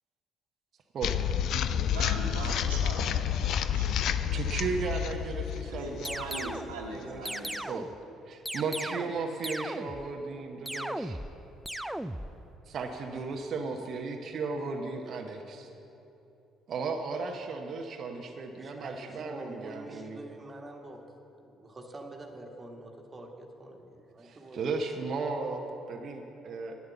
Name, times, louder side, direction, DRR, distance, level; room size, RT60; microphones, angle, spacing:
voice 1, 0.9-1.5 2.4-2.5 4.3-6.3 6.9-7.3 7.7-11.2 12.7-15.7 16.7-20.2 24.2-26.8, right 4 dB, 50° right, 3 dB, 0.8 m, -35 dB
sound 1, 1.0-7.2, left 9 dB, 60° left, 0.4 m, -30 dB
voice 2, 1.9-3.9 5.6-7.7, right 3 dB, 80° right, -3 dB, 1.4 m, -40 dB
sound 2, 6.1-6.7 7.3-8.0 8.5-9.2 9.4-10.1 10.7-11.4 11.7-12.3, right 1 dB, 5° right, 0.4 m, -37 dB
voice 3, 18.6-21.0 21.3-24.6, right 2 dB, 30° right, 1 dB, 1.7 m, -46 dB
11.0 x 8.6 x 7.1 m, 3.0 s
figure-of-eight pair, 50°, 0 cm